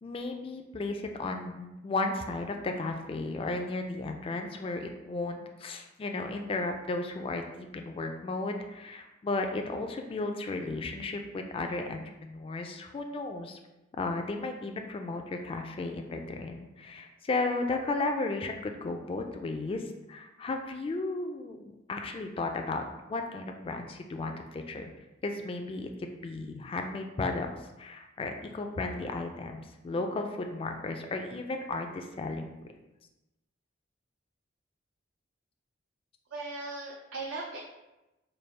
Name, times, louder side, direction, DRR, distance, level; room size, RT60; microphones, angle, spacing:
voice 1, 0.0-13.6 14.0-19.8 20.1-21.6 21.9-22.8 23.1-24.9 25.2-27.5 27.8-32.5, left 3 dB, 30° left, 4 dB, 0.3 m, -34 dB
voice 2, 36.3-37.6, right 3 dB, 85° right, -3 dB, 0.5 m, -38 dB
3.3 x 2.3 x 4.3 m, 0.99 s
head